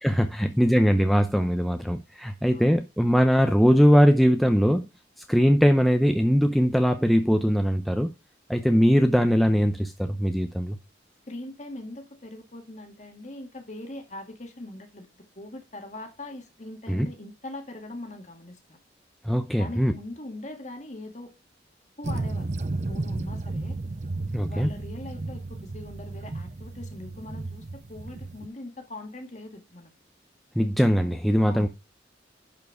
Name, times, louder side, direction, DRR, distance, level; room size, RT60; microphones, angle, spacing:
voice 1, 0.0-4.8 5.3-8.1 8.5-10.8 16.9-17.1 19.2-19.9 24.3-24.7 30.6-31.7, equal, ahead, 0.6 m, -21 dB
voice 2, 11.3-15.1 15.4-18.8 19.5-21.3 22.0-22.5 22.9-23.8 24.5-29.9 31.5-31.7, left 1 dB, 40° left, 1.9 m, -41 dB
sound 1, 22.0-28.5, right 2 dB, 40° right, 0.6 m, -33 dB
11.0 x 4.7 x 4.7 m
head